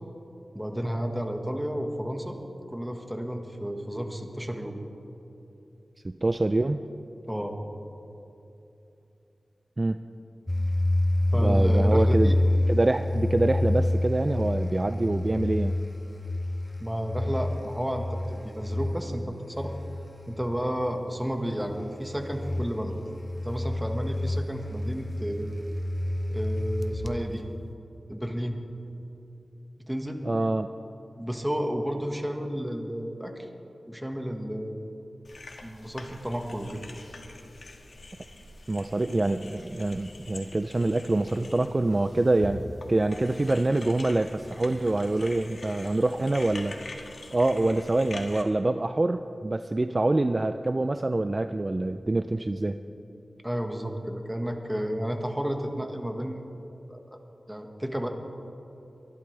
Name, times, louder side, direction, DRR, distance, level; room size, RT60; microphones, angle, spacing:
voice 1, 0.5-2.4 2.7-4.8 7.3-7.6 11.3-12.4 16.8-19.7 20.3-22.9 23.4-25.5 26.3-27.4 28.1-28.6 29.9-30.2 31.2-33.5 33.8-34.9 35.6-36.8 53.4-56.5 56.9-57.2 57.5-58.1, equal, 5° right, 4 dB, 1.5 m, -32 dB
voice 2, 6.0-6.8 9.8-10.0 11.3-12.3 12.7-15.7 30.2-30.7 38.7-42.6 42.9-46.8 47.3-52.8, right 2 dB, 40° right, 9 dB, 0.4 m, -25 dB
sound 1, 10.5-20.5 21.6-27.2, left 1 dB, 20° left, 0.7 m, -28 dB
sound 2, 35.2-48.4, left 2 dB, 75° left, 1.6 m, -44 dB
23.5 x 12.0 x 3.4 m, 2.9 s
wide cardioid pair, 55°, 0 cm